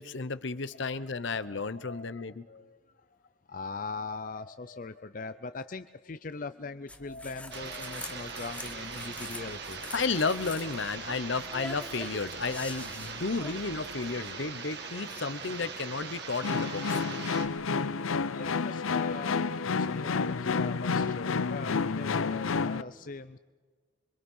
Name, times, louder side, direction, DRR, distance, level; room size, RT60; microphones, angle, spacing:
voice 1, 0.0-2.4 9.9-17.0, left 4 dB, 65° left, 14 dB, 0.9 m, -33 dB
voice 2, 1.3-3.1 3.5-9.8 13.9-14.0 18.3-23.4, left 4 dB, 40° left, 11 dB, 0.6 m, -41 dB
sound 1, 6.9-14.1, left 2 dB, 5° left, 1.0 m, -45 dB
sound 2, 7.5-17.5, right 5 dB, 55° right, 2.3 m, -41 dB
sound 3, 16.4-22.8, left 5 dB, 90° left, 0.7 m, -30 dB
26.5 x 24.0 x 5.6 m, 1.5 s
head